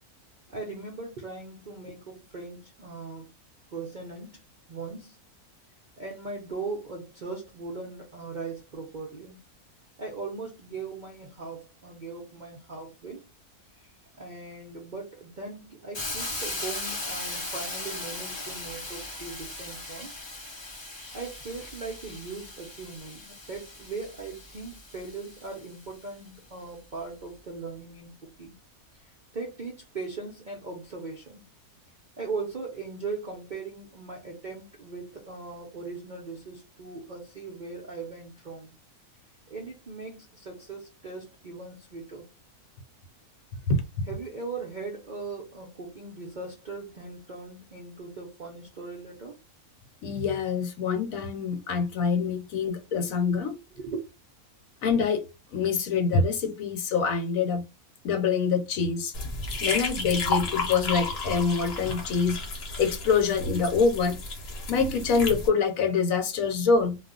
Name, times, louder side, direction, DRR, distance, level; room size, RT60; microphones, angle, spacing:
voice 1, 0.5-3.3 3.7-4.4 4.7-5.2 6.0-9.4 10.0-13.3 13.7-20.1 21.1-28.5 28.9-31.5 32.2-38.7 39.5-42.3 44.1-49.4 53.5-54.1, right 4 dB, 55° right, 0.5 m, -39 dB
Hiss, 15.9-25.8, left 2 dB, 30° left, 0.5 m, -38 dB
voice 2, 50.0-53.6 54.8-55.2 55.5-57.6 58.0-59.1 59.6-62.4 62.8-64.2 64.7-67.0, left 5 dB, 70° left, 1.1 m, -25 dB
sound 1, 59.1-65.5, left 3 dB, 50° left, 0.9 m, -32 dB
2.4 x 2.2 x 3.7 m
omnidirectional pair, 1.6 m